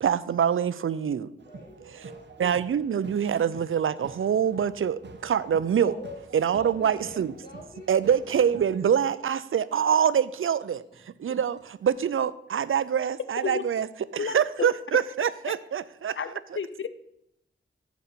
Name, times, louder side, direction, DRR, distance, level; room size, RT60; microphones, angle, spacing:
voice 1, 0.0-1.3 2.4-5.9 6.3-7.3 7.9-13.9 14.1-16.2, right 8 dB, 80° right, 16 dB, 0.5 m, -25 dB
voice 2, 1.3-2.4 5.8-7.9 16.5-16.6, left 2 dB, 45° left, -8 dB, 3.2 m, -45 dB
sound 1, 1.4-8.8, right 4 dB, 60° right, 1.0 m, -47 dB
voice 3, 14.2-14.7 16.2-16.9, left 6 dB, 70° left, 13 dB, 0.7 m, -32 dB
14.0 x 5.2 x 4.4 m, 0.80 s
wide cardioid pair, 65°, 21 cm